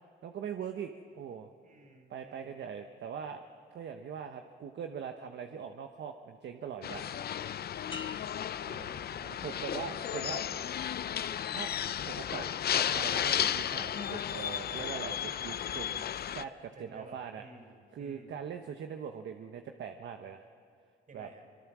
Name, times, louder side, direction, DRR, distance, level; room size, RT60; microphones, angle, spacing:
voice 1, 0.2-0.9 1.2-1.5 2.1-3.4 3.7-7.3 8.7-10.5 11.5-11.7 12.0-17.4 17.9-20.5 21.1-21.3, right 7 dB, 65° right, 6 dB, 1.1 m, -42 dB
voice 2, 1.6-2.6 7.9-9.1 9.8-10.4 16.7-18.4 21.1-21.4, right 2 dB, 45° right, 5 dB, 5.4 m, -55 dB
sound 1, 6.8-16.4, left 10 dB, 50° left, 0.6 m, -34 dB
sound 2, 7.9-9.7 10.2-10.6, left 3 dB, 25° left, 1.4 m, -49 dB
24.5 x 23.5 x 6.2 m, 2.3 s
cardioid pair, 90°, 20 cm